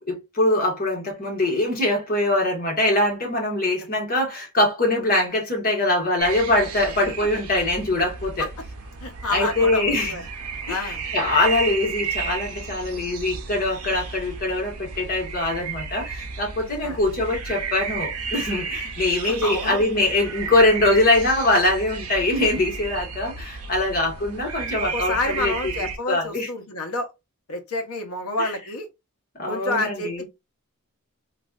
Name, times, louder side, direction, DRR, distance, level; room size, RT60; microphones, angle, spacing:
voice 1, 0.1-8.5 9.3-10.1 10.7-25.5 26.1-26.5 28.4-28.5 29.4-30.2, left 2 dB, 40° left, 1.5 m, -23 dB
sound 1, 6.2-26.0, right 5 dB, 80° right, 0.7 m, -33 dB
voice 2, 9.0-10.2 10.5-11.0 16.8-17.0 19.3-19.8 24.8-27.1 27.5-28.9 29.5-30.3, left 2 dB, 75° left, 0.8 m, -28 dB
3.2 x 2.4 x 2.4 m
head